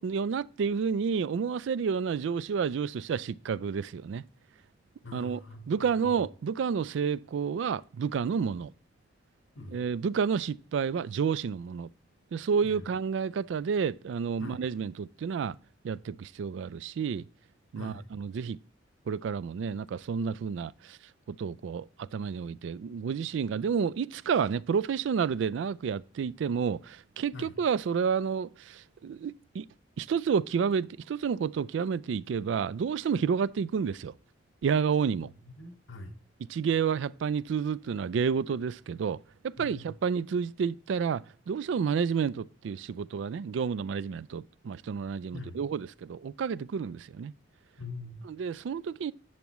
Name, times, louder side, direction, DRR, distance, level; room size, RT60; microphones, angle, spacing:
voice 1, 0.0-4.2 5.1-5.4 5.7-8.7 9.7-11.9 12.3-15.6 15.8-17.2 17.7-18.6 19.1-21.0 21.3-29.7 30.0-34.1 34.6-35.3 36.5-47.3 48.3-49.1, right 6 dB, 70° right, 0.3 m, -30 dB
voice 2, 5.0-6.2 9.5-9.8 12.6-12.8 14.4-14.6 17.8-18.1 27.3-27.5 35.2-36.1 39.6-39.9 45.3-45.7 47.8-48.2, left 2 dB, 85° left, 1.4 m, -43 dB
10.5 x 8.2 x 3.0 m
head